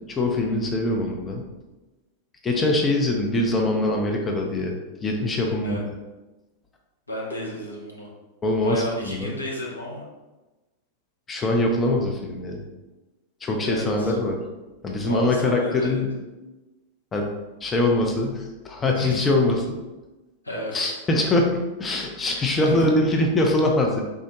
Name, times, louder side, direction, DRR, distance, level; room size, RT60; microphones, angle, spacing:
voice 1, 0.2-1.4 2.4-4.7 5.0-5.8 8.4-9.3 11.3-12.6 13.4-14.4 14.8-16.1 17.1-17.3 17.6-19.8 20.7-24.0, left 2 dB, 20° left, 1 dB, 0.4 m, -23 dB
voice 2, 7.1-8.1 8.6-10.0 13.6-14.2 15.1-16.0 18.9-19.2 20.4-21.0 22.6-22.8, left 1 dB, 80° left, -2 dB, 0.6 m, -32 dB
3.4 x 2.0 x 2.9 m, 1.1 s
figure-of-eight pair, 90°, 0 cm